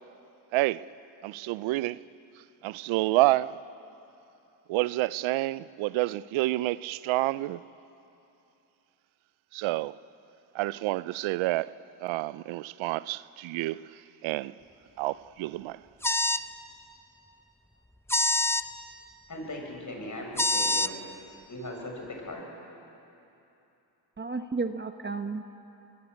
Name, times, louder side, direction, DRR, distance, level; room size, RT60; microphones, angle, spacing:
voice 1, 0.5-0.8 1.2-2.0 2.6-3.6 4.7-7.6 9.5-9.9 10.5-11.7 12.0-13.8 14.2-14.5 15.0-15.8, right 18 dB, 80° right, 0.6 m, -28 dB
sound 1, 16.0-16.5 18.1-18.7 20.4-20.9, left 1 dB, 5° left, 0.7 m, -25 dB
voice 2, 19.3-21.0 21.5-22.5, left 1 dB, 40° left, 7.8 m, -38 dB
voice 3, 24.2-25.5, right 4 dB, 25° right, 1.1 m, -33 dB
24.5 x 21.0 x 8.5 m
supercardioid pair, 60°, 46 cm